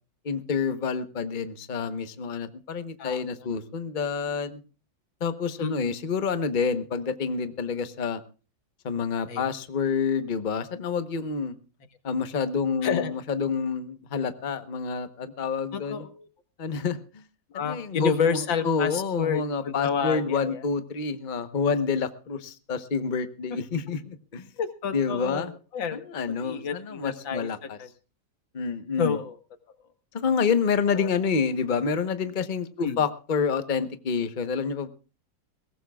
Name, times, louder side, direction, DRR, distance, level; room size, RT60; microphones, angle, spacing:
voice 1, 0.2-4.6 5.2-8.2 8.8-11.6 12.0-16.1 16.6-17.2 17.5-24.5 24.9-25.5 25.9-27.8 28.5-29.2 30.1-34.9, left 5 dB, 30° left, 10 dB, 1.0 m, -28 dB
voice 2, 15.7-16.3 17.5-20.6 24.6-27.9 29.0-29.4 30.9-31.1 32.8-33.0, left 6 dB, 85° left, 9 dB, 2.2 m, -30 dB
22.0 x 18.0 x 2.4 m, 0.35 s
omnidirectional pair, 2.0 m